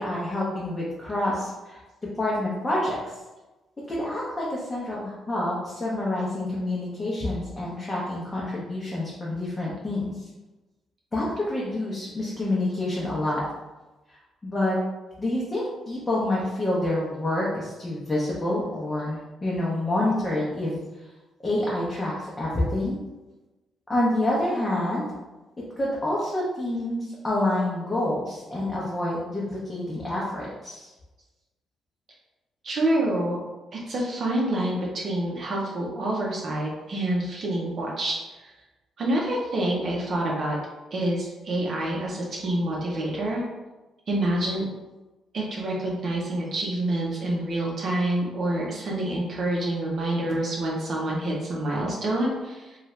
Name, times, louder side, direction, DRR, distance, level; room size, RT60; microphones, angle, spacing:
voice 1, 0.0-1.8 2.1-3.1 3.9-10.2 11.1-13.4 14.4-14.8 15.2-20.8 21.4-23.0 23.9-25.1 25.8-30.9, left 1 dB, 25° left, -6 dB, 0.7 m, -27 dB
voice 2, 32.6-33.4 33.9-38.5 39.0-40.6 40.9-43.4 44.1-44.6 45.3-52.8, right 1 dB, 50° right, -3 dB, 0.6 m, -27 dB
2.6 x 2.3 x 3.1 m, 1.1 s
cardioid pair, 90°, 0 cm